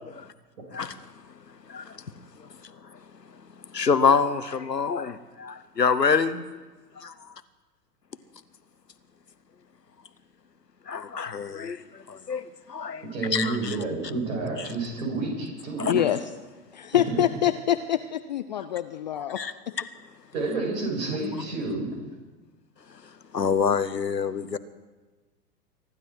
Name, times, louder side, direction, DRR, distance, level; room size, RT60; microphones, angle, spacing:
voice 1, 1.7-2.0 2.4-2.7 3.7-6.4 7.0-7.1 10.9-11.8 12.1-13.0 13.3-13.8 14.6-14.7 15.8-15.9 19.4-19.5 23.3-24.6, left 6 dB, 85° left, 13 dB, 1.0 m, -26 dB
voice 2, 13.1-16.0 17.1-17.2 20.3-21.9, right 3 dB, 60° right, 0 dB, 7.3 m, -29 dB
voice 3, 15.9-16.3 16.7-19.7, left 11 dB, 30° left, 11 dB, 0.4 m, -26 dB
24.0 x 12.0 x 4.6 m, 1.2 s
figure-of-eight pair, 105°, 48 cm